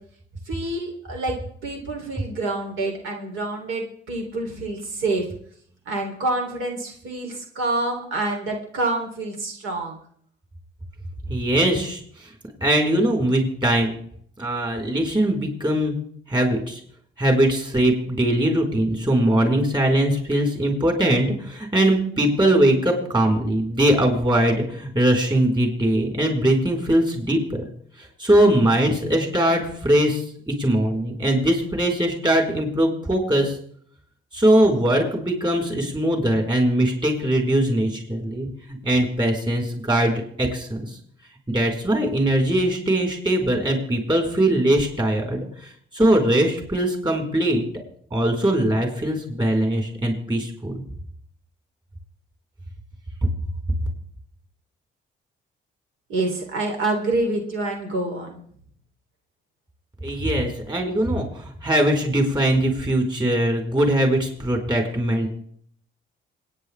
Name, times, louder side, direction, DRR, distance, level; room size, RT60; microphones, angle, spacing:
voice 1, 0.5-1.3 1.6-5.2 5.9-10.0 56.1-58.4, right 2 dB, 85° right, 1 dB, 3.2 m, -27 dB
voice 2, 11.3-12.3 12.6-14.0 14.4-15.9 16.3-16.8 17.2-27.7 28.0-33.6 34.3-41.0 41.5-47.7 48.1-50.7 60.0-65.3, right 1 dB, 20° right, 2 dB, 4.4 m, -21 dB
27.0 x 9.6 x 3.4 m, 0.62 s
cardioid pair, 90°, 20 cm